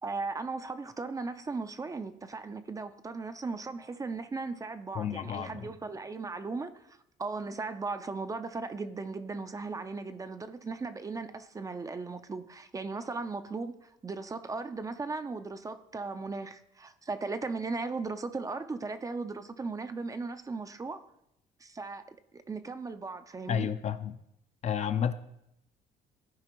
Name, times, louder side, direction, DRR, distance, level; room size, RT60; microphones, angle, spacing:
voice 1, 0.0-21.0 21.6-23.7, right 3 dB, 20° right, 0.4 m, -37 dB
voice 2, 4.9-5.7 23.5-24.2 24.6-25.1, left 8 dB, 40° left, 0.5 m, -31 dB
14.0 x 4.9 x 3.0 m
cardioid pair, 110°, 17 cm